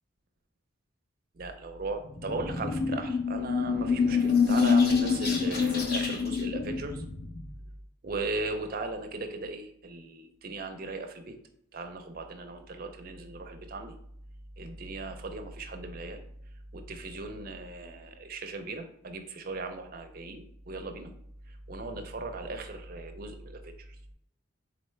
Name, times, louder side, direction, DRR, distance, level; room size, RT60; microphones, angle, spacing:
voice 1, 1.4-7.0 8.0-11.4 11.7-13.9 14.6-16.2 16.7-21.1 21.5-23.9, right 3 dB, 45° right, 5 dB, 0.5 m, -38 dB
sound 1, 2.0-7.5, left 5 dB, 50° left, 0.7 m, -26 dB
4.0 x 3.2 x 3.2 m, 0.71 s
head